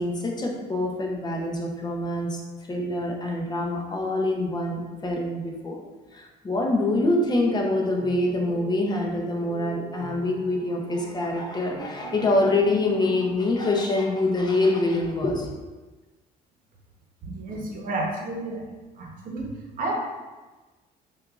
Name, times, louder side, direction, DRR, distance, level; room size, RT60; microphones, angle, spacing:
voice 1, 0.0-2.4 2.7-5.8 6.1-15.5, left 2 dB, 25° left, 0 dB, 0.8 m, -25 dB
sound 1, 7.2-13.3, right 5 dB, 40° right, 0.6 m, -42 dB
voice 2, 17.2-18.7 19.0-19.9, right 2 dB, 55° right, -2 dB, 0.9 m, -31 dB
6.0 x 2.5 x 2.4 m, 1.2 s
cardioid pair, 110°, 17 cm